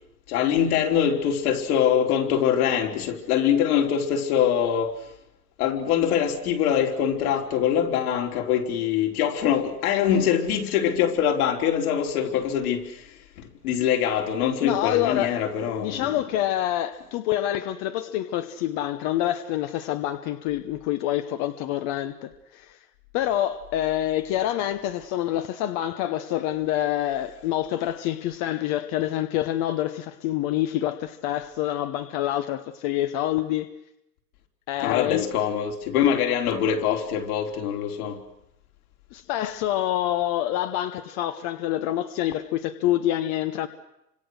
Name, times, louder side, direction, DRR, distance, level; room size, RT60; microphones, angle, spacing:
voice 1, 0.3-4.9 5.6-16.1 34.8-38.2, left 9 dB, 60° left, 4.0 m, -24 dB
voice 2, 14.6-15.3 15.8-22.8 23.1-33.7 34.7-35.3 39.1-43.7, left 13 dB, 35° left, 1.0 m, -27 dB
29.5 x 25.5 x 6.5 m
hypercardioid pair, 140°, 49 cm